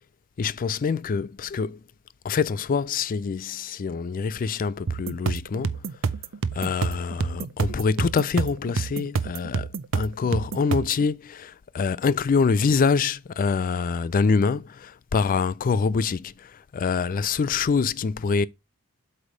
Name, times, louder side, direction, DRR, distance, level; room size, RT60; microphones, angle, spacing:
voice 1, 0.4-1.8 2.2-5.8 6.6-9.7 9.9-16.3 16.7-18.5, left 5 dB, 40° left, 0.4 m, -25 dB
sound 1, 4.9-11.0, right 5 dB, 65° right, 0.5 m, -28 dB
8.1 x 3.3 x 5.0 m
head